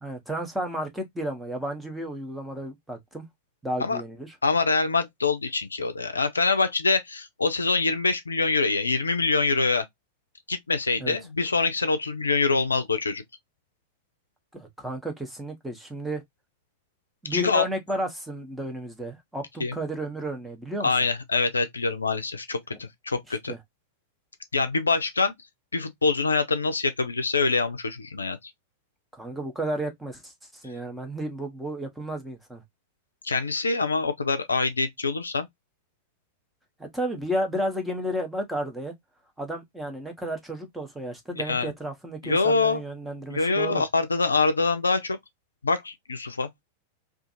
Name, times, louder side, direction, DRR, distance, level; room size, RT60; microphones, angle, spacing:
voice 1, 0.0-3.2 3.6-4.3 11.0-11.2 14.5-16.2 17.2-20.9 22.7-22.8 23.3-23.6 29.1-32.6 36.8-38.9 39.4-43.8, right 1 dB, 5° right, 0.8 m, -32 dB
voice 2, 4.4-9.9 10.5-13.2 17.3-17.7 19.6-19.7 20.8-23.5 24.5-25.3 25.7-28.4 33.2-35.5 41.4-41.7 42.2-42.8 43.3-45.2 45.6-46.5, left 4 dB, 75° left, 0.3 m, -25 dB
2.4 x 2.3 x 2.6 m
figure-of-eight pair, 90°, 0 cm